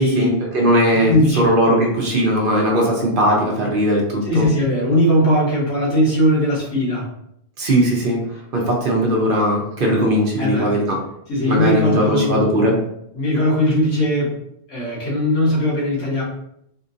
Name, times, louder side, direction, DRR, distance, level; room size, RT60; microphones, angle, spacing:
voice 1, 0.0-4.4 7.6-8.2 8.5-11.0 11.4-12.7, equal, 55° right, -1 dB, 0.9 m, -18 dB
voice 2, 1.1-1.5 4.2-7.1 10.4-10.7 11.3-12.4 13.1-14.4 14.7-16.2, equal, 75° left, -5 dB, 1.5 m, -19 dB
3.6 x 2.6 x 2.6 m, 0.75 s
omnidirectional pair, 1.1 m